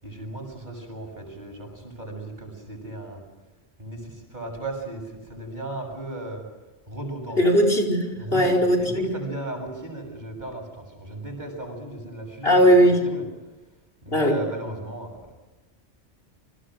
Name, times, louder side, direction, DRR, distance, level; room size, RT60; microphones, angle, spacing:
voice 1, 0.0-3.2 3.8-6.4 6.9-7.4 8.1-12.6 13.0-13.3 14.0-15.3, right 2 dB, 40° right, 3 dB, 7.4 m, -36 dB
voice 2, 7.4-9.1 12.4-13.0 14.1-14.4, equal, 60° left, 4 dB, 5.2 m, -19 dB
29.5 x 25.5 x 6.5 m, 1.1 s
omnidirectional pair, 1.2 m